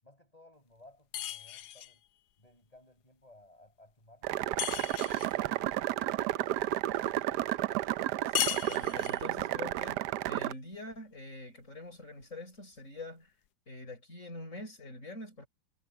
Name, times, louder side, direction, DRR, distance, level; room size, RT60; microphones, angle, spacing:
voice 1, 0.0-2.0 2.4-4.5 5.1-7.4, left 1 dB, 15° left, 7.5 m, -59 dB
sound 1, 1.1-2.0 4.6-5.4 8.3-9.3, left 12 dB, 75° left, 0.9 m, -35 dB
sound 2, 4.2-10.5, right 14 dB, 90° right, 0.9 m, -32 dB
voice 2, 8.3-13.3 13.7-15.5, left 2 dB, 35° left, 6.8 m, -45 dB
omnidirectional pair, 2.4 m